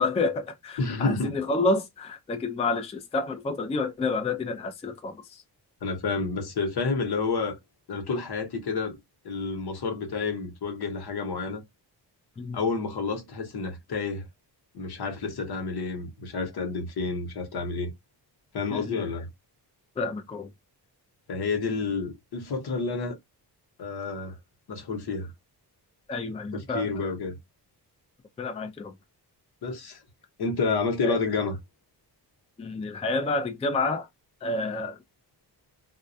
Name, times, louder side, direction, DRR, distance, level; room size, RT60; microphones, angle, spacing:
voice 1, 0.0-5.4 12.4-12.6 18.7-19.0 20.0-20.5 26.1-27.1 28.4-28.9 31.0-31.2 32.6-34.1 34.4-35.0, left 3 dB, 15° left, 0.3 m, -29 dB
voice 2, 0.8-1.3 5.8-7.5 7.9-9.0 9.2-11.6 12.5-14.3 14.7-17.9 18.5-19.3 21.3-23.2 23.8-24.3 24.7-25.3 26.5-27.4 29.6-30.0 30.4-31.6, left 4 dB, 65° left, 0.9 m, -29 dB
2.2 x 2.1 x 2.6 m
wide cardioid pair, 140°, 41 cm